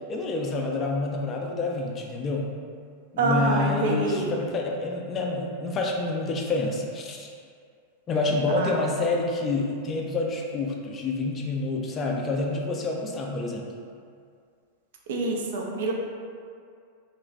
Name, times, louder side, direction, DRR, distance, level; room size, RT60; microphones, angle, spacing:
voice 1, 0.1-2.4 3.1-7.3 8.1-13.7, left 3 dB, 25° left, 0 dB, 0.4 m, -28 dB
voice 2, 3.2-4.3 8.6-8.7 15.1-15.9, right 2 dB, 60° right, 0 dB, 0.4 m, -26 dB
3.0 x 2.4 x 3.3 m, 2.2 s
figure-of-eight pair, 90°, 0 cm